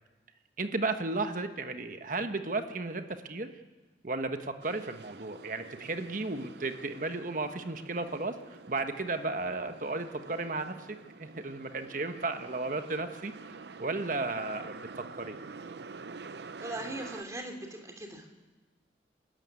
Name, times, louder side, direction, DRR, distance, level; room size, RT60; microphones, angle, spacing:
voice 1, 0.6-3.5 4.0-15.4, right 3 dB, 45° right, 7 dB, 1.2 m, -34 dB
sound 1, 4.6-17.2, right 4 dB, 70° right, 0.7 m, -48 dB
voice 2, 16.6-18.3, right 1 dB, 20° right, 3 dB, 2.8 m, -40 dB
28.0 x 13.0 x 9.6 m, 1.2 s
head